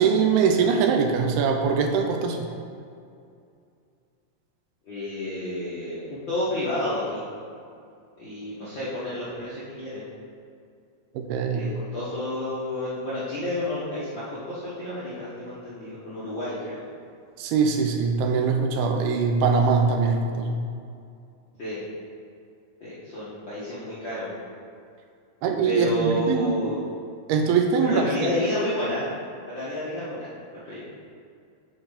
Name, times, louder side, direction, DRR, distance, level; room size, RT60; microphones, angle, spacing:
voice 1, 0.0-2.4 11.2-11.7 17.4-20.6 25.4-26.7 27.3-28.1, right 5 dB, 85° right, 4 dB, 2.5 m, -22 dB
voice 2, 4.8-7.2 8.2-10.0 11.5-16.7 21.6-21.8 22.8-24.3 25.6-26.8 27.8-29.0 29.5-30.3 30.7-30.8, left 1 dB, 65° left, -11 dB, 1.1 m, -30 dB
8.5 x 5.7 x 4.1 m, 2.4 s
omnidirectional pair, 4.5 m